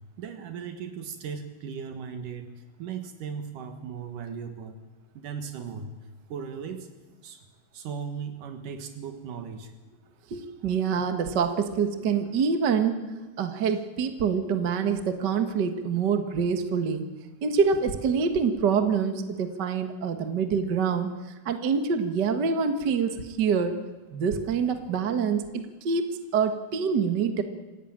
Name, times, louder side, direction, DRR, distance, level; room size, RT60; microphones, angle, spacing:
voice 1, 0.2-2.5 2.8-4.8 5.1-5.9 6.3-6.9 7.2-7.5 7.7-9.7, right 6 dB, 85° right, 6 dB, 3.2 m, -37 dB
voice 2, 10.3-13.0 13.4-17.0 17.4-21.1 21.4-23.8 24.1-27.4, right 6 dB, 45° right, 7 dB, 1.6 m, -26 dB
27.5 x 16.5 x 8.8 m, 1.3 s
omnidirectional pair, 3.6 m